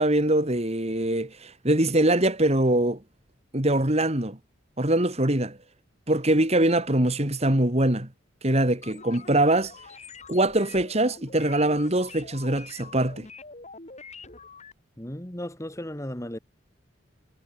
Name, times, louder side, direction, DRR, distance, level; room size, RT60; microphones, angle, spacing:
voice 1, 0.0-3.0 3.5-4.4 4.8-5.6 6.1-8.1 8.4-9.7 10.3-13.3, right 1 dB, 30° right, 2.9 m, -23 dB
sound 1, 8.8-14.7, left 4 dB, 35° left, 5.9 m, -45 dB
voice 2, 15.0-16.4, left 1 dB, 15° left, 2.3 m, -35 dB
head